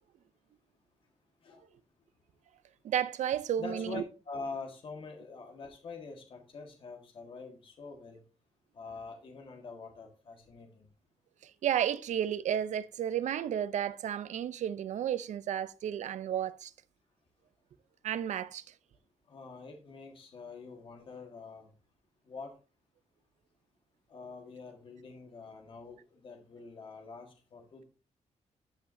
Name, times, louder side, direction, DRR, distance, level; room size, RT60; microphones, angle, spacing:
voice 1, 2.8-4.0 11.4-16.7 18.0-18.6, right 10 dB, 80° right, 0.6 m, -32 dB
voice 2, 3.6-8.2 8.7-10.9 19.3-21.7 22.3-22.5 24.1-27.8, left 4 dB, 45° left, 1.7 m, -45 dB
13.5 x 5.6 x 2.7 m
wide cardioid pair, 180°, 12 cm